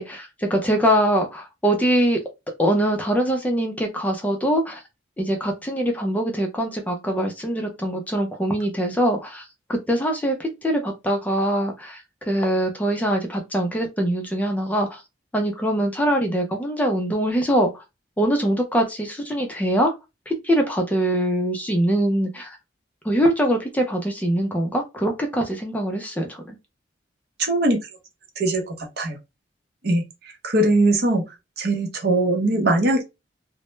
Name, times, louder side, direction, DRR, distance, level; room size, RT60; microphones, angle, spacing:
voice 1, 0.0-2.2 2.6-4.8 5.2-15.0 15.3-17.8 18.2-19.9 20.3-22.6 23.0-26.6, right 1 dB, 10° left, 0.4 m, -23 dB
voice 2, 27.4-27.8 28.4-28.6 29.0-29.2 29.8-30.0 30.4-31.2 31.6-33.0, right 2 dB, 60° right, 0.7 m, -20 dB
2.1 x 2.0 x 3.0 m
head